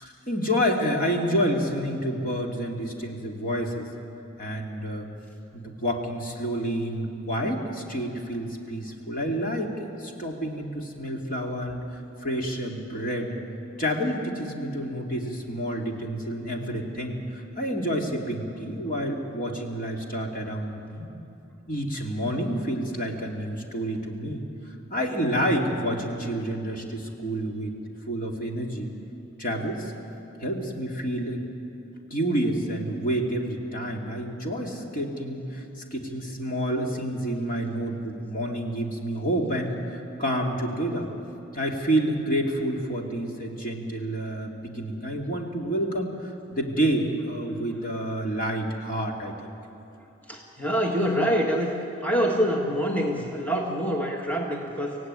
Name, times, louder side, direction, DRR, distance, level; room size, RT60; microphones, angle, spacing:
voice 1, 0.0-3.9 4.4-5.1 5.5-13.3 13.8-21.1 21.7-24.4 24.9-27.8 28.1-28.9 29.4-29.9 30.4-31.4 32.1-35.6 35.9-41.1 41.5-49.3, equal, 40° left, 1 dB, 2.6 m, -29 dB
voice 2, 50.3-51.7 52.0-55.0, equal, 5° left, -1 dB, 1.8 m, -25 dB
25.0 x 17.0 x 9.6 m, 2.9 s
head